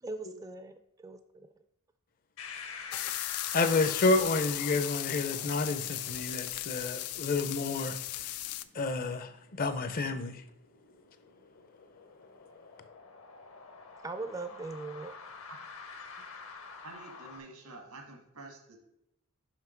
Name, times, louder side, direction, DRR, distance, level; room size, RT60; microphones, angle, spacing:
voice 1, 0.0-1.5 14.0-15.1, right 3 dB, 15° right, 0.3 m, -40 dB
sound 1, 2.4-17.4, left 5 dB, 65° left, 1.0 m, -49 dB
sound 2, 2.9-8.6, left 14 dB, 90° left, 0.4 m, -36 dB
voice 2, 3.5-8.0 8.7-10.4, left 3 dB, 40° left, 0.5 m, -29 dB
voice 3, 16.8-18.8, right 3 dB, 90° right, 1.7 m, -48 dB
5.8 x 5.6 x 4.4 m
head